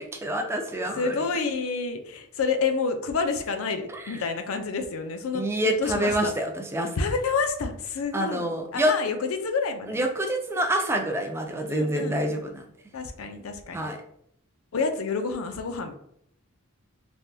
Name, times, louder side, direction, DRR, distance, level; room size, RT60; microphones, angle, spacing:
voice 1, 0.0-1.1 3.9-4.2 5.3-6.9 8.1-8.9 9.9-12.6 13.7-14.0, right 1 dB, 10° right, 3 dB, 0.3 m, -27 dB
voice 2, 1.0-6.3 7.0-8.5 8.7-10.1 11.7-12.2 12.9-13.9 14.7-15.9, left 4 dB, 80° left, 7 dB, 0.5 m, -29 dB
3.3 x 2.2 x 2.6 m, 0.69 s
head